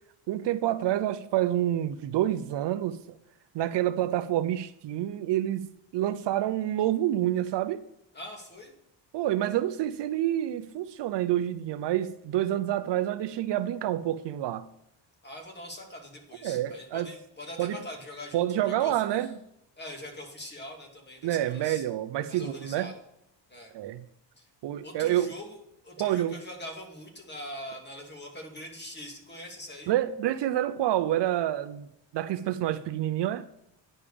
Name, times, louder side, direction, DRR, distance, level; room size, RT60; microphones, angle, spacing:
voice 1, 0.3-3.2 3.5-5.7 5.9-7.8 9.1-14.7 16.4-17.1 17.6-17.8 18.3-19.3 21.2-22.9 23.7-24.0 24.6-25.3 26.0-26.3 29.9-31.9 32.1-33.5, right 12 dB, 65° right, 0.7 m, -28 dB
voice 2, 8.1-8.7 15.2-19.3 19.8-21.8 22.3-22.9 23.5-23.7 24.4-24.5 24.8-25.6 25.8-29.9, left 1 dB, 20° left, 2.7 m, -43 dB
9.9 x 5.5 x 6.9 m
cardioid pair, 115°, 46 cm